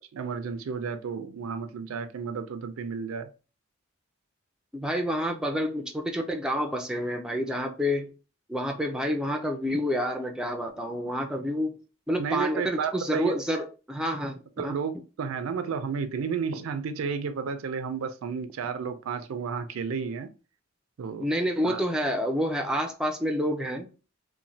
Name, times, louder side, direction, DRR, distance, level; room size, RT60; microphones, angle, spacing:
voice 1, 0.1-3.3 12.2-13.3 14.6-20.3 21.0-21.3 21.6-21.8, right 6 dB, 85° right, 0.4 m, -32 dB
voice 2, 4.7-8.1 8.5-11.8 12.1-14.7 21.2-23.9, equal, 5° right, 0.3 m, -28 dB
3.0 x 2.1 x 2.6 m
head